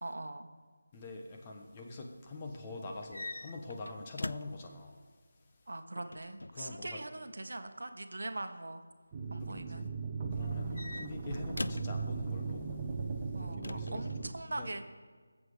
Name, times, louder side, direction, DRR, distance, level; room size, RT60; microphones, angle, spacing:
voice 1, 0.0-0.5 5.7-8.8 9.3-9.9 10.7-11.0 13.3-14.9, right 2 dB, 70° right, 8 dB, 1.1 m, -42 dB
voice 2, 0.9-5.0 6.5-7.0 9.4-9.9 10.3-12.7 13.4-14.3 14.6-14.8, left 2 dB, 20° left, 2 dB, 1.2 m, -45 dB
sound 1, 3.0-4.7 6.0-6.7 8.2-8.6 10.4-12.0 13.6-14.3, left 2 dB, 80° left, 0.4 m, -42 dB
sound 2, 9.1-14.3, right 4 dB, 25° right, 1.1 m, -37 dB
20.0 x 7.5 x 5.0 m, 1.5 s
figure-of-eight pair, 165°, 0 cm